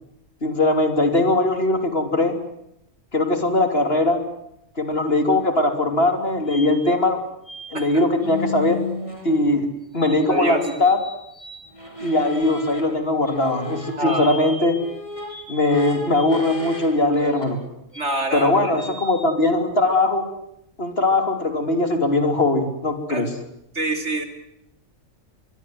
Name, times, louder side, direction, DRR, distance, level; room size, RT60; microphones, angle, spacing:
voice 1, 0.4-2.3 3.1-4.2 4.8-7.2 7.7-8.8 9.2-11.0 12.0-14.8 15.5-17.6 18.3-20.3 20.8-23.3, left 2 dB, 50° left, 7 dB, 3.5 m, -20 dB
sound 1, 6.5-6.7 7.5-7.9 8.1-9.6 10.0-12.8 13.2-16.9 17.1-17.5 17.9-18.0 18.8-19.3, left 2 dB, 25° left, 5.3 m, -35 dB
voice 2, 10.3-10.6 14.0-14.3 17.9-18.7 23.1-23.3 23.7-24.2, right 1 dB, 60° right, 6 dB, 3.8 m, -25 dB
25.0 x 22.0 x 7.9 m, 0.80 s
omnidirectional pair, 1.4 m